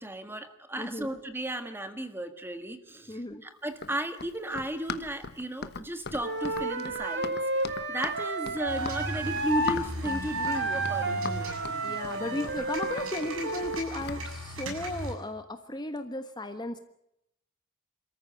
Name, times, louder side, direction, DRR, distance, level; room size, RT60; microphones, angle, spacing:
voice 1, 0.0-11.6, right 1 dB, 10° right, 8 dB, 1.7 m, -35 dB
voice 2, 0.8-1.1 3.1-3.4 11.8-16.8, left 1 dB, 20° left, 8 dB, 1.2 m, -35 dB
Run, 3.7-14.2, left 4 dB, 50° left, 1.2 m, -40 dB
Wind instrument woodwind instrument, 6.2-9.8 10.0-13.9, right 2 dB, 55° right, 2.5 m, -32 dB
sound 1, 8.7-15.1, right 1 dB, 75° right, 7.0 m, -38 dB
27.5 x 14.0 x 9.1 m, 0.80 s
head